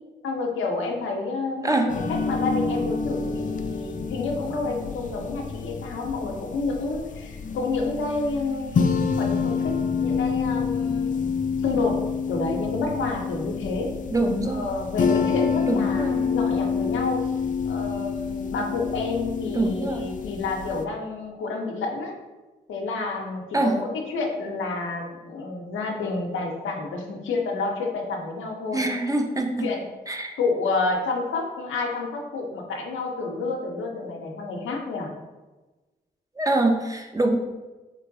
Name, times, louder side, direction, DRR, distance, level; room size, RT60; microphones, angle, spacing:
voice 1, 0.2-11.3 11.6-12.0 12.3-13.9 14.4-17.2 17.7-22.1 22.7-28.8 29.3-29.9 30.4-35.1, left 3 dB, 90° left, 1 dB, 0.6 m, -29 dB
voice 2, 1.6-1.9 14.1-14.7 15.7-16.3 19.5-20.1 23.5-23.8 28.7-29.7 30.1-30.3 36.4-37.4, right 2 dB, 15° right, 3 dB, 0.6 m, -24 dB
sound 1, 1.9-20.8, left 5 dB, 40° left, 0.4 m, -28 dB
3.7 x 2.9 x 2.6 m, 1.2 s
supercardioid pair, 40°, 20 cm